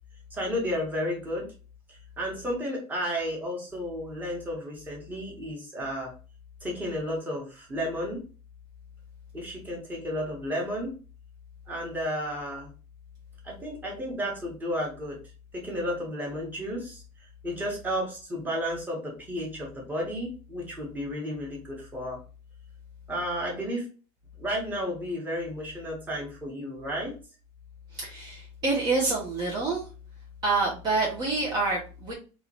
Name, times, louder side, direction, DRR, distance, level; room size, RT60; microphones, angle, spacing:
voice 1, 0.3-1.4 1.9-6.1 6.6-8.2 9.3-10.9 11.7-12.7 13.4-15.2 15.5-22.2 23.1-23.9 24.4-27.1, equal, 15° right, -2 dB, 1.4 m, -32 dB
voice 2, 28.0-29.8 30.4-32.1, right 3 dB, 35° right, -3 dB, 1.0 m, -27 dB
3.4 x 3.1 x 3.0 m, 0.35 s
cardioid pair, 155°, 12 cm